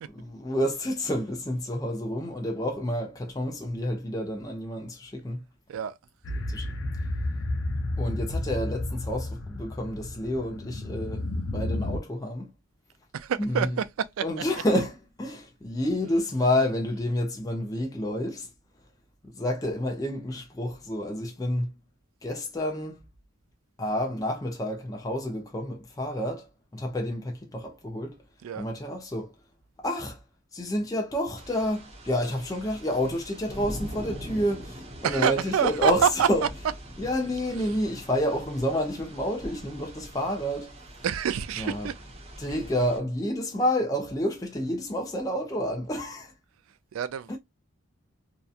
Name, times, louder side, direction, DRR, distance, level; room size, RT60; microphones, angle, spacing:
voice 1, 0.1-5.4 6.4-6.9 8.0-11.3 11.5-12.5 13.4-13.8 14.2-18.5 19.2-21.7 22.2-23.0 23.8-26.5 26.7-28.2 28.6-29.3 29.8-30.2 30.5-36.4 37.0-40.7 41.6-41.9 42.4-46.3 47.3-47.4, left 1 dB, 15° left, 0.4 m, -29 dB
sound 1, 6.2-12.0, left 1 dB, 70° left, 0.6 m, -31 dB
voice 2, 13.1-14.3 28.4-28.7 35.0-36.3 41.0-41.9 46.9-47.4, right 8 dB, 75° right, 0.3 m, -26 dB
sound 2, 31.4-43.0, equal, 30° right, 0.8 m, -43 dB
2.8 x 2.2 x 2.3 m
head